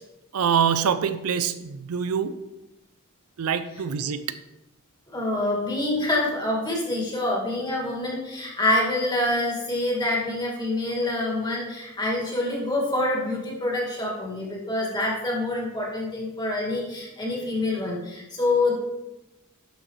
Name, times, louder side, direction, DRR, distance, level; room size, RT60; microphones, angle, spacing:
voice 1, 0.3-2.3 3.4-4.4, right 7 dB, 75° right, 12 dB, 0.4 m, -25 dB
voice 2, 5.1-18.7, left 2 dB, 20° left, -3 dB, 2.1 m, -26 dB
11.0 x 6.0 x 3.2 m, 0.99 s
head